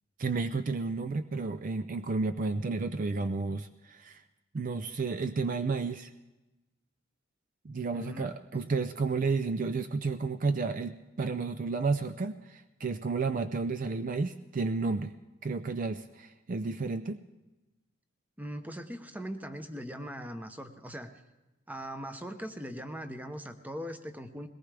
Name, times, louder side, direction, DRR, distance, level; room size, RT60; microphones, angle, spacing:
voice 1, 0.2-4.2 4.5-6.1 7.6-15.1 15.4-17.2, right 4 dB, 40° right, 11 dB, 0.4 m, -32 dB
voice 2, 7.9-8.3 8.5-8.7 18.4-21.1 21.7-24.5, equal, 10° right, 8 dB, 0.8 m, -40 dB
21.0 x 18.5 x 3.4 m, 1.0 s
head